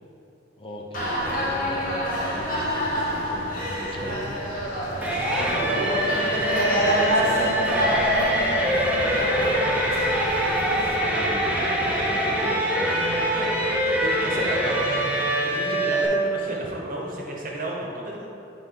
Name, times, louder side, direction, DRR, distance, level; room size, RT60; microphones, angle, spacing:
voice 1, 0.6-4.5 5.5-5.9 10.8-13.0 14.3-14.9, equal, 30° left, 0 dB, 0.5 m, -38 dB
sound 1, 0.9-11.0, equal, 50° left, 1.1 m, -27 dB
sound 2, 5.0-16.1, right 1 dB, 10° right, 0.8 m, -24 dB
voice 2, 5.1-8.0 8.7-9.3 11.9-12.4 13.4-13.5 14.0-14.6 15.4-18.3, right 1 dB, 50° right, -2 dB, 1.0 m, -32 dB
7.9 x 3.7 x 3.7 m, 2.7 s
head